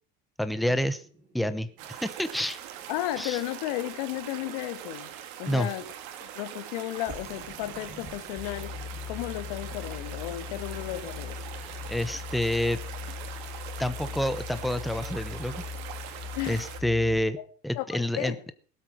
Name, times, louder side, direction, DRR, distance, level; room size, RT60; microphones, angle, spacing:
voice 1, 0.4-1.0 1.3-2.6 3.2-3.4 5.5-5.7 11.9-12.8 13.8-15.6 16.5-17.4 17.6-18.3, left 1 dB, ahead, 0.9 m, -28 dB
sound 1, 0.9-4.0 7.1-14.4, right 1 dB, 25° right, 6.4 m, -53 dB
sound 2, 1.8-16.8, right 10 dB, 70° right, 2.6 m, -42 dB
voice 2, 2.9-5.1 5.4-5.8 6.2-8.7 9.1-11.4 16.3-16.6 17.4-17.5 17.7-17.8 18.1-18.3, left 15 dB, 80° left, 1.7 m, -33 dB
sound 3, 8.4-17.3, left 6 dB, 25° left, 3.0 m, -40 dB
18.0 x 8.4 x 6.2 m
supercardioid pair, 130°, 20 cm